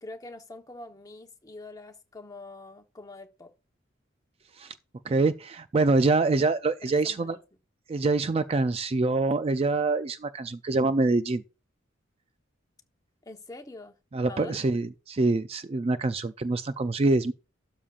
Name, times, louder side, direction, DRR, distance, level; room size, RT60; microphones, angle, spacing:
voice 1, 0.0-3.5 6.8-7.4 13.2-13.9 14.3-14.7, left 2 dB, 20° left, 1.1 m, -44 dB
voice 2, 5.0-7.4 7.9-11.4 14.1-17.3, right 3 dB, 30° right, 0.4 m, -25 dB
12.5 x 6.9 x 2.5 m
head